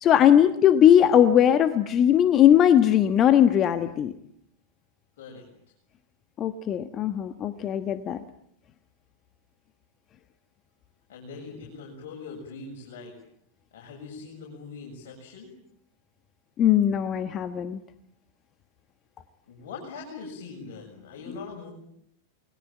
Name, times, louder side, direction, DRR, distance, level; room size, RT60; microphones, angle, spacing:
voice 1, 0.0-4.1 6.4-8.2 16.6-17.8, left 10 dB, 30° left, 11 dB, 1.3 m, -19 dB
voice 2, 11.1-13.1 13.7-15.5 19.5-21.7, left 4 dB, 55° left, -1 dB, 7.3 m, -41 dB
29.5 x 21.5 x 9.0 m, 0.74 s
figure-of-eight pair, 90°, 0 cm